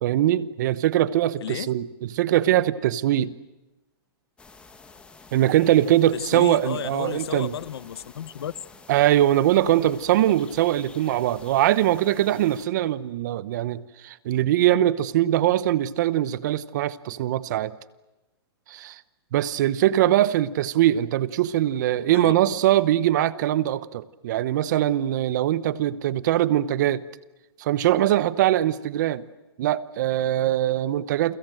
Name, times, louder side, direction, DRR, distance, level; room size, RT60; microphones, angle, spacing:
voice 1, 0.0-1.9 2.1-3.3 5.3-7.5 8.9-17.7 18.7-19.0 19.3-27.0 27.6-29.2 29.6-31.4, right 13 dB, 45° right, 1.0 m, -22 dB
voice 2, 1.4-1.7 6.1-8.5 22.1-22.4, left 10 dB, 75° left, 1.1 m, -33 dB
sound 1, 4.4-12.7, left 4 dB, 10° left, 1.7 m, -49 dB
29.5 x 24.0 x 7.8 m
hypercardioid pair, 160°, 14 cm